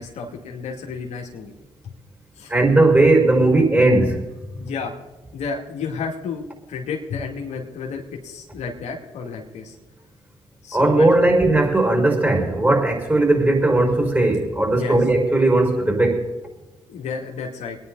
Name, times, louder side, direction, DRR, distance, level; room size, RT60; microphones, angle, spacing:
voice 1, 0.0-1.5 1.8-1.9 2.4-2.5 4.0-4.1 4.6-5.0 5.3-6.4 6.7-9.8 10.6-11.3 14.7-15.0 16.9-17.8, left 5 dB, 70° left, 0 dB, 2.4 m, -31 dB
voice 2, 2.5-4.2 4.5-4.7 10.7-16.2, right 2 dB, 15° right, 2 dB, 5.6 m, -17 dB
24.0 x 10.0 x 4.0 m, 1.1 s
hypercardioid pair, 50°, 12 cm